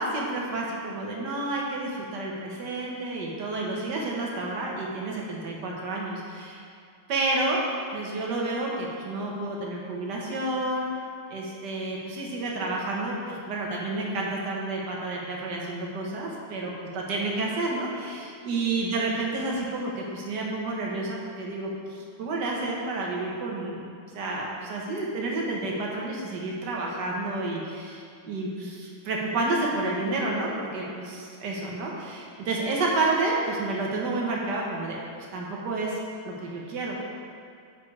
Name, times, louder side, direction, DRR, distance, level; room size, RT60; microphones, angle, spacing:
voice 1, 0.0-6.6 7.1-10.9 11.3-23.9 24.1-35.0 35.3-36.0 36.4-37.0, right 2 dB, 60° right, -2 dB, 1.7 m, -30 dB
8.3 x 5.0 x 4.8 m, 2.3 s
omnidirectional pair, 2.1 m